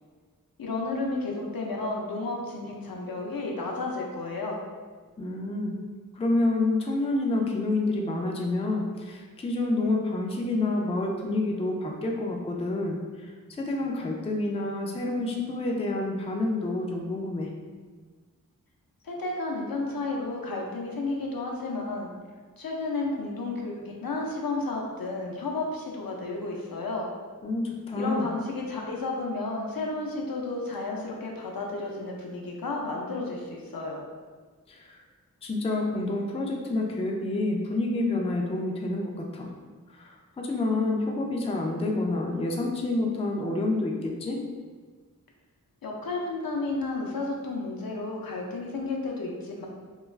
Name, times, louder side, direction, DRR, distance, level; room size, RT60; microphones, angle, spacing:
voice 1, 0.6-4.6 19.0-22.1 22.6-27.1 27.9-34.0 45.8-49.7, left 3 dB, 75° left, -1 dB, 0.5 m, -32 dB
voice 2, 5.2-5.7 6.1-13.3 13.6-17.5 27.4-28.3 34.7-35.0 35.4-39.5 39.9-44.4, left 2 dB, 20° left, 0 dB, 0.3 m, -28 dB
2.3 x 2.3 x 3.1 m, 1.5 s
wide cardioid pair, 50°, 35 cm